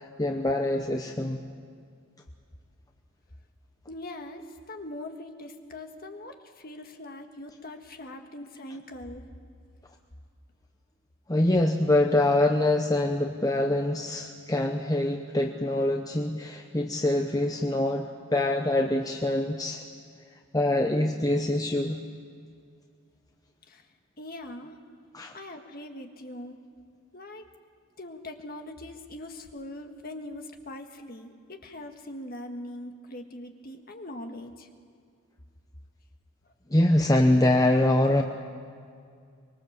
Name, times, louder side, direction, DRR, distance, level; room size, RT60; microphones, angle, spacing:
voice 1, 0.0-1.4 11.3-19.8 20.5-22.0 25.1-25.3 36.7-38.2, left 1 dB, 15° left, 3 dB, 0.8 m, -24 dB
voice 2, 3.9-9.2 23.7-23.9 24.2-24.8 25.3-26.6 27.1-27.5 28.0-34.7 36.4-36.5, left 1 dB, 40° left, 4 dB, 1.7 m, -41 dB
24.5 x 22.0 x 7.4 m, 2.2 s
head